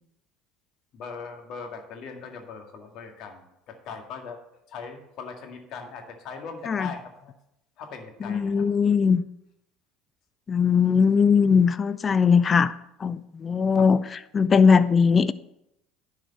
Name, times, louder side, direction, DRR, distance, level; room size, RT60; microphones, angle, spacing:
voice 1, 0.9-4.4 4.7-7.3 7.8-9.0 13.8-13.9, left 5 dB, 60° left, 3 dB, 2.0 m, -40 dB
voice 2, 8.2-9.2 10.5-12.7 13.0-15.3, left 6 dB, 30° left, 16 dB, 0.4 m, -20 dB
11.0 x 4.9 x 6.7 m, 0.83 s
hypercardioid pair, 80°, 0 cm